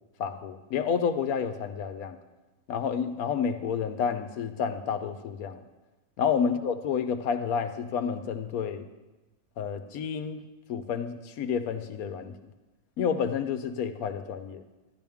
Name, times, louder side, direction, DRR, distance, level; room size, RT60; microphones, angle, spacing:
voice 1, 0.2-2.2 2.7-5.6 6.2-8.8 9.6-10.4 10.7-12.3 13.0-14.6, left 7 dB, 70° left, 9 dB, 1.1 m, -30 dB
11.5 x 10.5 x 3.5 m, 1.1 s
omnidirectional pair, 1.6 m